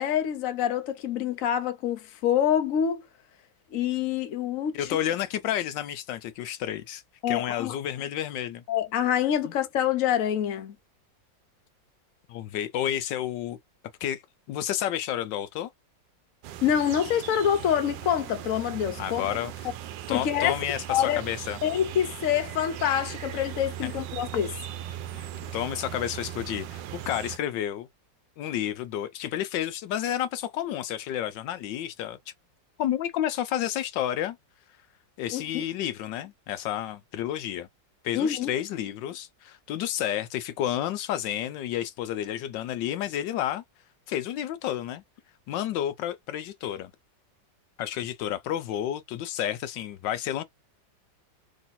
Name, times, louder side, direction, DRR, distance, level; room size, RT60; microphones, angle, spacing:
voice 1, 0.0-3.0 3.7-4.9 7.2-7.8 8.7-10.7 16.6-19.2 20.1-20.6 20.9-21.2 21.6-24.6 35.3-35.6 38.1-38.5, left 9 dB, 55° left, 1.1 m, -26 dB
voice 2, 4.7-7.0 7.3-8.6 12.3-13.6 14.0-14.2 14.5-15.7 19.0-19.7 20.1-21.6 25.1-25.3 25.5-27.9 28.4-32.2 32.8-34.4 35.2-37.7 38.0-43.6 44.1-45.0 45.5-46.9 47.8-50.4, left 11 dB, 80° left, 1.3 m, -30 dB
sound 1, 16.4-27.4, right 11 dB, 80° right, 1.2 m, -39 dB
3.1 x 3.1 x 4.1 m
omnidirectional pair, 2.0 m